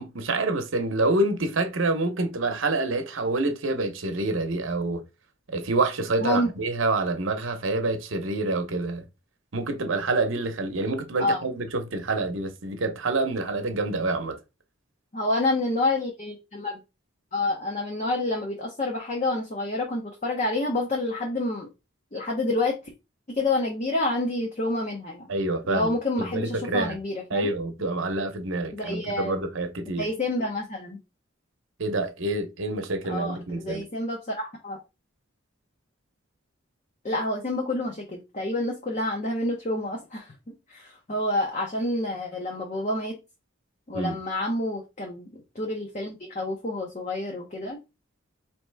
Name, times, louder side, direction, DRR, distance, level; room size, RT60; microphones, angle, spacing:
voice 1, 0.0-5.0 5.5-9.0 9.5-14.4 25.3-27.0 27.3-30.1 31.8-33.8 43.9-44.2, right 2 dB, 75° right, 0.8 m, -27 dB
voice 2, 6.2-6.5 11.2-11.4 15.1-16.8 17.3-21.7 22.1-22.8 23.3-25.3 25.7-27.5 28.7-29.4 30.0-31.0 33.1-34.8 37.0-40.3 40.7-43.2 43.9-45.3 45.6-47.8, left 2 dB, 35° left, 0.7 m, -28 dB
4.1 x 2.9 x 3.3 m
head